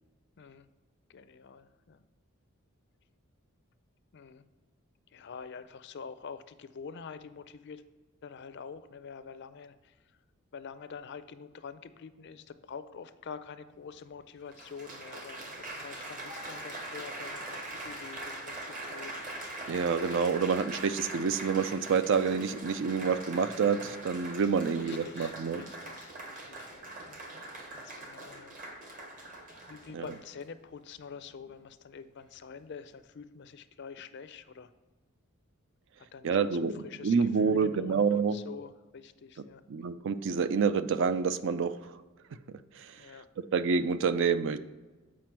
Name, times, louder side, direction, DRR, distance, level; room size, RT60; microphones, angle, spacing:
voice 1, 0.4-0.7 1.1-2.1 4.1-4.4 5.1-7.8 8.2-9.9 10.5-19.1 24.7-27.5 27.7-28.6 29.7-34.7 36.0-39.7 43.0-43.3, left 6 dB, 55° left, 12 dB, 0.5 m, -46 dB
Applause, 13.7-13.8 14.5-30.4 31.2-31.5, right 1 dB, 40° right, 1.1 m, -42 dB
voice 2, 19.7-25.7 29.9-30.0 36.2-38.4 39.7-41.9 42.5-43.1 43.5-44.6, right 5 dB, 60° right, 12 dB, 0.4 m, -28 dB
7.5 x 5.0 x 4.5 m, 1.2 s
head